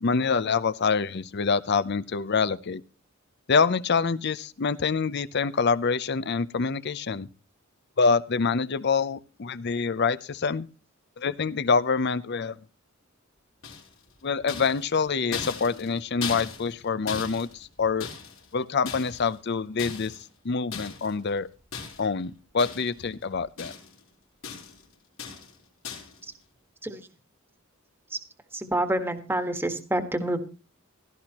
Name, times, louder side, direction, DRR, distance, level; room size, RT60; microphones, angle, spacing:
voice 1, 0.0-2.8 3.5-7.3 8.0-10.7 11.2-12.6 14.2-18.1 18.5-20.2 20.4-21.5 22.0-23.7, left 5 dB, 55° left, 0.6 m, -26 dB
sound 1, 13.6-14.1 14.5-16.8 17.1-18.5 18.9-19.4 19.8-20.3 20.7-21.1 21.7-22.2 22.6-23.1 23.3-24.0 24.4-24.8 25.2-25.6 25.8-26.2, left 6 dB, 90° left, 3.8 m, -38 dB
voice 2, 28.5-30.4, right 1 dB, 10° right, 1.4 m, -28 dB
16.0 x 13.5 x 2.9 m
head